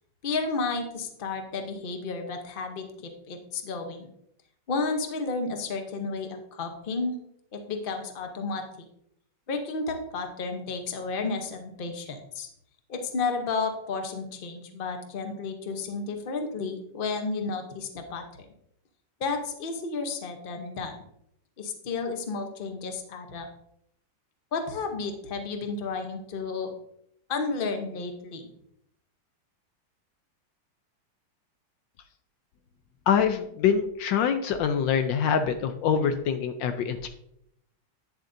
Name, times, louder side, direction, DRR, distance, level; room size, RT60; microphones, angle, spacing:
voice 1, 0.2-4.1 4.7-7.2 7.5-8.6 9.5-12.5 12.9-18.5 19.2-20.9 21.6-23.5 24.5-26.7 27.3-28.5, left 4 dB, 50° left, 5 dB, 0.6 m, -32 dB
voice 2, 33.1-37.1, left 7 dB, 75° left, 8 dB, 1.2 m, -25 dB
9.1 x 7.2 x 2.6 m, 0.76 s
omnidirectional pair, 2.2 m